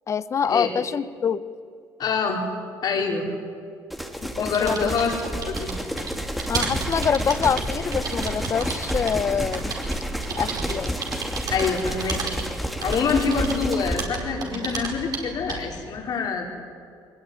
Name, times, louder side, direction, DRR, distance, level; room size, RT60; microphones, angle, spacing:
voice 1, 0.1-1.4 4.4-4.9 6.5-9.7 10.4-10.9, left 7 dB, 35° left, 16 dB, 0.9 m, -25 dB
voice 2, 2.0-2.4 2.8-3.3 4.4-5.1 5.5-5.7 11.5-12.3 12.8-16.5, left 5 dB, 55° left, 1 dB, 4.9 m, -25 dB
sound 1, 3.9-14.1, equal, ahead, 2.4 m, -30 dB
sound 2, 4.3-15.8, right 4 dB, 50° right, 5.0 m, -33 dB
22.5 x 20.5 x 9.6 m, 2.2 s
cardioid pair, 105°, 8 cm